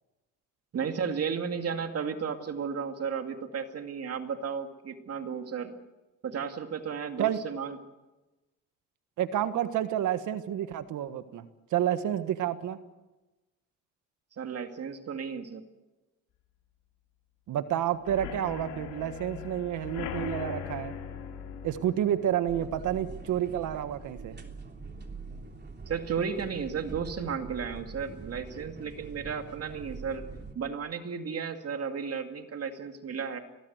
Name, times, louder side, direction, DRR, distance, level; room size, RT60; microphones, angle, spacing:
voice 1, 0.7-5.7 6.2-7.8 14.4-15.6 25.9-30.2 30.5-33.4, right 6 dB, 55° right, 6 dB, 2.3 m, -34 dB
voice 2, 9.2-11.4 11.7-12.8 17.5-20.9 21.6-24.4, right 11 dB, 80° right, 11 dB, 1.5 m, -29 dB
sound 1, 18.0-25.7 26.0-26.4 26.7-26.8 27.2-27.3, left 7 dB, 85° left, 3.1 m, -41 dB
sound 2, 22.5-30.5, right 4 dB, 35° right, 3.4 m, -44 dB
23.5 x 18.5 x 8.1 m, 1.1 s
cardioid pair, 90°, 30 cm